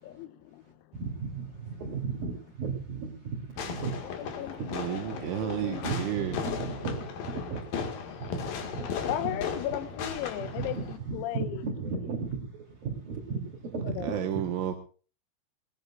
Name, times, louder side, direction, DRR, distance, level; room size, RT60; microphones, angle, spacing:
voice 1, 0.0-0.8 4.2-5.9 6.2-6.3 9.1-11.6 14.0-14.3, left 12 dB, 90° left, 3.7 m, -36 dB
voice 2, 0.6-4.9 5.2-5.4 5.7-9.4 10.0-10.1 10.4-14.4, right 4 dB, 45° right, 4.5 m, -36 dB
Fireworks, 3.6-11.0, left 7 dB, 55° left, 3.0 m, -37 dB
voice 3, 4.7-6.4 14.0-14.7, right 10 dB, 75° right, 3.6 m, -31 dB
21.0 x 20.0 x 2.5 m
omnidirectional pair, 5.9 m